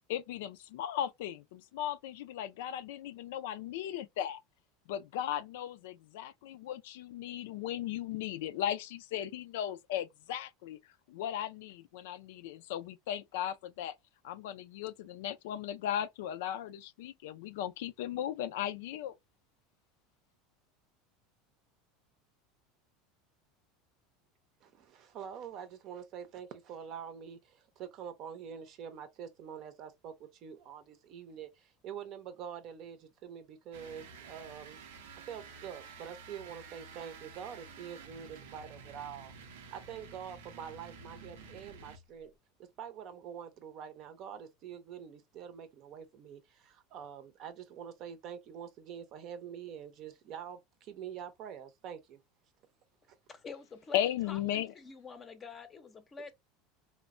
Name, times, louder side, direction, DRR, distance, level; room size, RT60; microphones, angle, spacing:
voice 1, 0.1-4.4 4.9-13.9 14.2-19.1 53.9-54.7, left 11 dB, 80° left, 0.3 m, -37 dB
voice 2, 24.6-34.8 35.3-42.3 42.8-52.2, right 8 dB, 50° right, 0.6 m, -46 dB
sound 1, 33.7-42.2, right 5 dB, 90° right, 0.6 m, -51 dB
voice 3, 53.3-54.0 54.3-56.3, left 4 dB, 25° left, 0.6 m, -47 dB
3.1 x 2.1 x 2.4 m
supercardioid pair, 125°, 0 cm